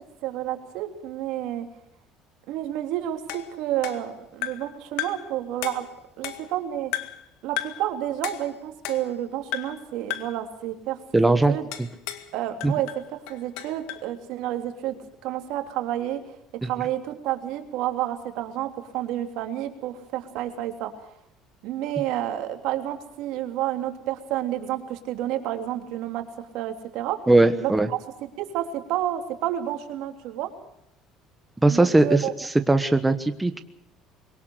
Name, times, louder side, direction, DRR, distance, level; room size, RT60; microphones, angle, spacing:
voice 1, 0.2-1.7 2.5-5.9 6.2-6.9 7.4-11.7 12.3-15.0 15.2-20.9 21.6-27.2 27.6-28.0 28.4-30.5 31.7-32.3, right 12 dB, 75° right, 5 dB, 3.2 m, -30 dB
sound 1, 3.3-4.7 5.0-5.3 5.6-6.6 6.9-7.3 7.6-7.9 8.2-9.2 9.5-9.8 10.1-10.4 11.7-12.3 12.6-14.1, left 14 dB, 85° left, 1.9 m, -34 dB
voice 2, 11.1-11.5 12.6-12.7 16.6-16.7 27.3-27.9 31.6-33.6, right 2 dB, 10° right, 8 dB, 1.2 m, -19 dB
22.5 x 18.5 x 6.5 m, 0.83 s
cardioid pair, 115°, 0 cm